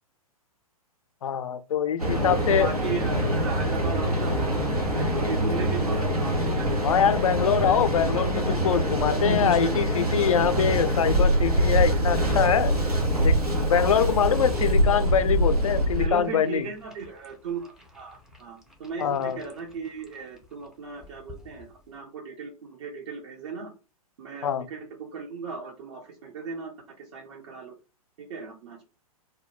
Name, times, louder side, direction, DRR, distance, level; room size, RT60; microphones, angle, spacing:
voice 1, 1.2-2.7 6.8-12.7 13.2-13.4 13.6-16.7 19.0-19.4 24.4-24.7, left 8 dB, 65° left, 0.4 m, -24 dB
Mechanical fan, 2.0-16.1, right 1 dB, 90° right, 0.8 m, -24 dB
voice 2, 2.2-7.0 16.0-23.7 24.2-27.7 28.2-28.8, right 5 dB, 50° right, 0.7 m, -37 dB
sound 1, 8.7-22.0, left 2 dB, ahead, 0.4 m, -42 dB
2.2 x 2.1 x 3.0 m
figure-of-eight pair, 110°, 19 cm